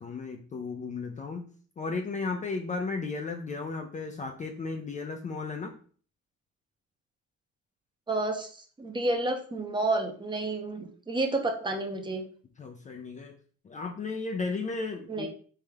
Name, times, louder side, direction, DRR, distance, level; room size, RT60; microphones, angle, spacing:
voice 1, 0.0-1.4 1.8-5.7 12.6-13.3 13.7-15.3, left 4 dB, 25° left, 4 dB, 0.5 m, -34 dB
voice 2, 8.1-12.2 15.1-15.3, right 2 dB, 15° right, 4 dB, 0.7 m, -30 dB
4.2 x 3.4 x 3.5 m, 0.43 s
cardioid pair, 130°, 31 cm